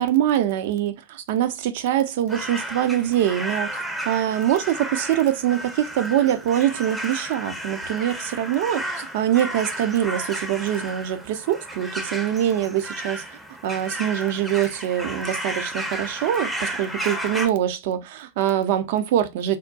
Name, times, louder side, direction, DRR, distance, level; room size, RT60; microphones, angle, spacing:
voice 1, 0.0-13.2 13.6-19.6, right 11 dB, 50° right, 0.5 m, -24 dB
sound 1, 2.3-17.5, right 1 dB, 5° right, 0.6 m, -33 dB
3.6 x 2.1 x 2.5 m
figure-of-eight pair, 90°, 0 cm